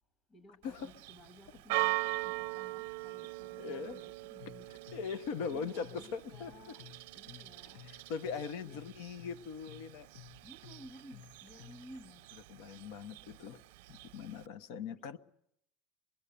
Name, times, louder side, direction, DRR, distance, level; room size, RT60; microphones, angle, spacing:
voice 1, 0.3-4.9 5.5-6.8 7.1-7.9 8.6-8.8 10.4-12.3 14.9-15.2, left 1 dB, 25° left, 2.0 m, -56 dB
Church bell, 0.6-14.5, right 23 dB, 80° right, 0.8 m, -42 dB
voice 2, 3.6-4.0 4.9-6.5 7.8-10.1 12.5-13.6 13.9-15.2, left 6 dB, 65° left, 1.2 m, -40 dB
sound 1, 4.4-12.0, left 9 dB, 90° left, 0.8 m, -55 dB
24.0 x 23.0 x 6.9 m
cardioid pair, 165°, 0 cm